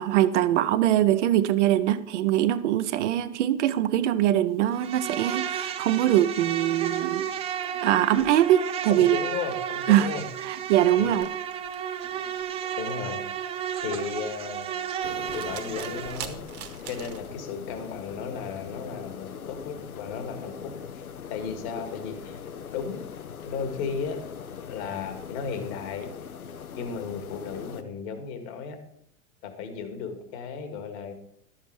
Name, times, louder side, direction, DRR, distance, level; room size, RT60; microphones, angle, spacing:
voice 1, 0.0-7.3 7.8-9.2 9.9-10.1 10.4-11.3, right 12 dB, 55° right, 11 dB, 0.7 m, -22 dB
Insect, 4.7-16.2, right 9 dB, 15° right, 0.4 m, -33 dB
voice 2, 9.0-10.2 11.0-11.3 12.8-13.2 13.8-14.7 15.3-16.4 16.9-22.4 22.7-23.0 23.4-24.2 24.7-26.1 26.8-28.8 29.4-31.1, left 6 dB, 50° left, 7 dB, 1.9 m, -35 dB
sound 1, 10.8-17.3, right 10 dB, 35° right, 1.2 m, -44 dB
sound 2, 15.0-27.8, left 7 dB, 75° left, 0.9 m, -41 dB
12.0 x 7.4 x 4.7 m, 0.72 s
figure-of-eight pair, 85°, 43 cm